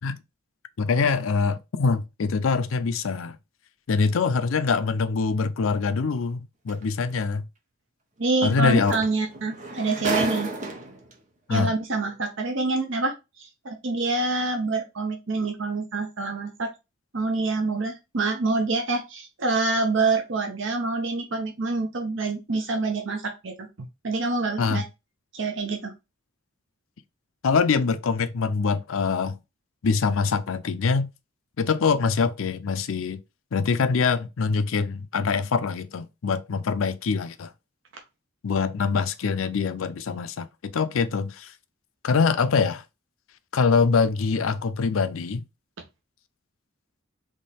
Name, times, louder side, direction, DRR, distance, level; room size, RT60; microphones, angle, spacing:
voice 1, 0.8-3.4 3.9-7.4 8.4-8.9 11.5-11.7 24.6-24.8 27.4-29.4 29.8-31.1 31.6-33.2 33.5-37.5 38.4-41.5 42.0-42.8 43.5-45.4, left 5 dB, 80° left, 0.5 m, -24 dB
sound 1, 6.7-6.8 8.5-8.6 8.9-11.1 12.0-12.1, right 2 dB, 35° right, 0.9 m, -31 dB
voice 2, 8.2-10.5 11.5-16.7 17.1-24.8 25.3-25.9, right 3 dB, 70° right, 0.8 m, -26 dB
3.7 x 3.1 x 4.1 m
head